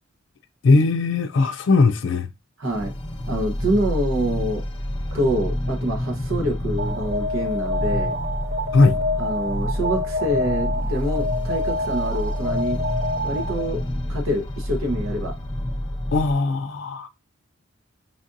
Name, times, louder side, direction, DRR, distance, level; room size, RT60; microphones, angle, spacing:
voice 1, 0.6-2.3 8.7-9.0 16.1-17.1, left 3 dB, 70° left, 0.4 m, -19 dB
voice 2, 2.6-2.9 3.3-4.6 5.1-8.2 9.2-12.8 13.2-13.8 14.1-15.3, right 1 dB, 90° right, 0.9 m, -26 dB
sound 1, 2.7-16.3, left 1 dB, 25° left, 0.7 m, -28 dB
Alarm, 6.8-13.9, left 2 dB, 40° right, 0.7 m, -27 dB
5.1 x 2.5 x 2.5 m
head